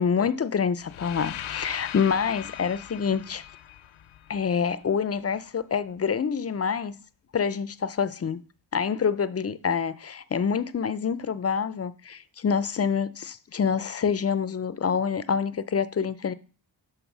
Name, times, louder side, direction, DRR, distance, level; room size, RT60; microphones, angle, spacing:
voice 1, 0.0-3.4 4.3-7.0 7.3-8.4 8.7-16.3, left 6 dB, 35° left, 0.4 m, -26 dB
sound 1, 0.8-4.9, left 11 dB, 85° left, 0.5 m, -39 dB
7.1 x 3.3 x 5.9 m
cardioid pair, 65°, 47 cm